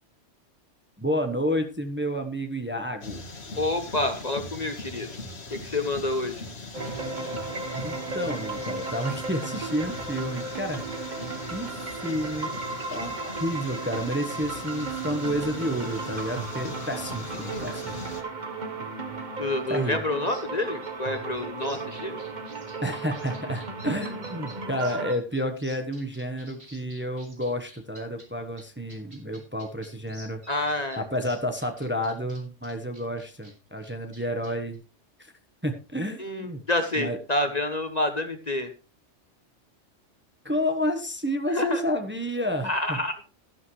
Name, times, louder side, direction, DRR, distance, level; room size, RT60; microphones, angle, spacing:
voice 1, 1.0-3.2 7.8-11.1 11.5-11.7 12.0-12.6 12.9-17.9 19.7-20.0 22.8-34.8 35.2-35.3 35.6-36.6 37.0-37.2 40.4-43.0, equal, 10° right, 5 dB, 1.1 m, -30 dB
sound 1, 3.0-18.2, left 3 dB, 60° left, 1.8 m, -40 dB
voice 2, 3.6-5.1 5.5-6.4 17.4-17.8 19.4-22.2 30.5-31.0 36.2-38.7 41.5-41.8 42.6-43.1, left 2 dB, 35° left, 7 dB, 1.1 m, -28 dB
sound 2, 6.7-25.1, right 3 dB, 40° right, 1.2 m, -35 dB
sound 3, 20.2-28.2 28.6-28.7 28.9-33.5 33.8-34.7, right 2 dB, 60° right, 4.2 m, -50 dB
12.0 x 11.5 x 3.2 m, 0.33 s
omnidirectional pair, 1.3 m